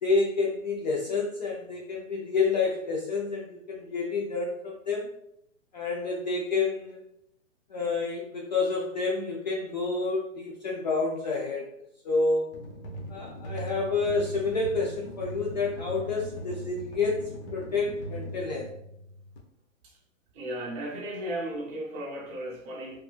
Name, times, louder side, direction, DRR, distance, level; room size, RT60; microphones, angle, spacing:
voice 1, 0.0-5.1 5.7-7.0 7.7-11.7 12.0-12.5 13.1-18.7, left 3 dB, 35° left, -2 dB, 0.4 m, -29 dB
sound 1, 12.5-19.4, equal, 60° left, 0.9 m, -40 dB
voice 2, 20.3-23.0, right 1 dB, 30° right, -4 dB, 1.0 m, -35 dB
3.5 x 2.9 x 2.3 m, 0.76 s
hypercardioid pair, 150°, 39 cm